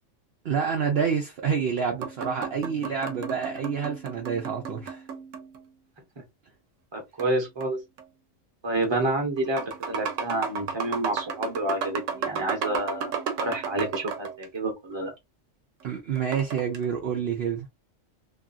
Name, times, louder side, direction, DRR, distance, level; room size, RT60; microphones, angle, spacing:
voice 1, 0.4-5.0 15.8-17.7, right 6 dB, 60° right, 0.8 m, -28 dB
sound 1, 2.0-5.7 7.2-8.0 8.8-9.0 9.4-14.5 16.2-16.9, right 6 dB, 85° right, 1.0 m, -34 dB
voice 2, 6.9-7.8 8.6-13.1 13.4-15.1, right 2 dB, 25° right, 0.9 m, -29 dB
3.0 x 2.4 x 2.5 m
omnidirectional pair, 1.3 m